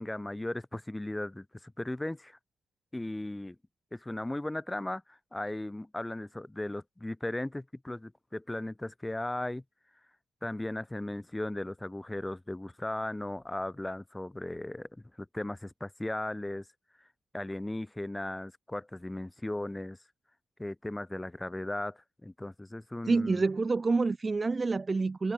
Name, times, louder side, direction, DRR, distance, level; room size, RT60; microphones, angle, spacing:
voice 1, 0.0-2.4 2.9-3.6 3.9-9.6 10.4-14.9 15.2-16.7 17.3-20.0 20.6-23.4, left 1 dB, 10° left, 7.3 m, -37 dB
voice 2, 23.1-25.3, right 3 dB, 25° right, 3.4 m, -27 dB
cardioid pair, 90°, 0 cm